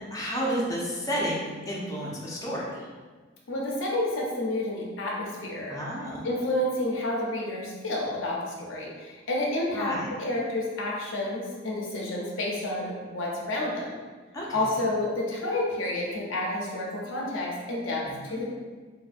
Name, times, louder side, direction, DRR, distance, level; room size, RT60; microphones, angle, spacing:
voice 1, 0.0-2.8 5.7-6.3 9.7-10.1 14.3-14.9 18.0-18.4, equal, 15° left, -5 dB, 0.5 m, -32 dB
voice 2, 3.5-5.8 6.2-9.9 10.2-13.9 14.5-18.0 18.3-18.5, left 1 dB, 75° left, -2 dB, 0.6 m, -30 dB
2.6 x 2.5 x 2.4 m, 1.4 s
head